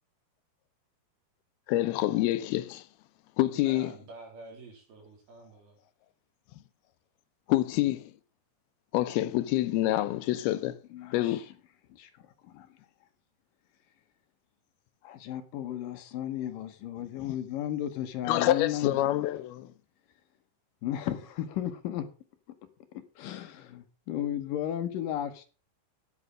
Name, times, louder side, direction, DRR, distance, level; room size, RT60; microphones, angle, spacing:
voice 1, 1.7-2.8 3.4-3.9 7.5-8.1 8.9-10.8 11.1-11.4 18.3-19.7, left 15 dB, 90° left, 2.7 m, -27 dB
voice 2, 3.5-5.8, right 2 dB, 80° right, 5.9 m, -48 dB
voice 3, 10.9-11.5 11.9-12.1 12.4-12.7 15.0-19.0 20.8-22.1 22.9-25.5, left 11 dB, 70° left, 2.5 m, -34 dB
10.0 x 8.3 x 6.2 m
omnidirectional pair, 4.3 m